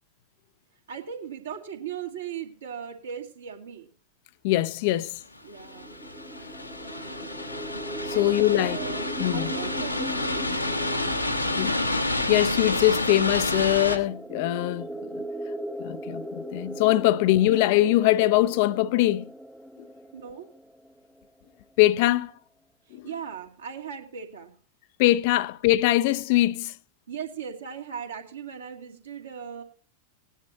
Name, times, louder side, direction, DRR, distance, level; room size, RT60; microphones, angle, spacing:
voice 1, 0.9-3.9 5.4-6.1 8.1-9.0 9.3-10.5 16.7-16.8 20.1-20.5 22.9-24.5 27.1-29.6, right 7 dB, 70° right, 2.6 m, -38 dB
voice 2, 4.4-5.2 8.1-8.8 9.2-9.5 11.6-11.8 12.3-15.2 15.8-19.3 19.8-19.9 21.8-22.3 22.9-23.1 25.0-26.7, left 16 dB, 50° left, 0.5 m, -22 dB
sound 1, 5.6-14.0, left 2 dB, 85° left, 1.2 m, -29 dB
sound 2, 5.6-21.3, right 1 dB, 5° right, 0.6 m, -39 dB
19.0 x 10.0 x 2.9 m
figure-of-eight pair, 90°, 0 cm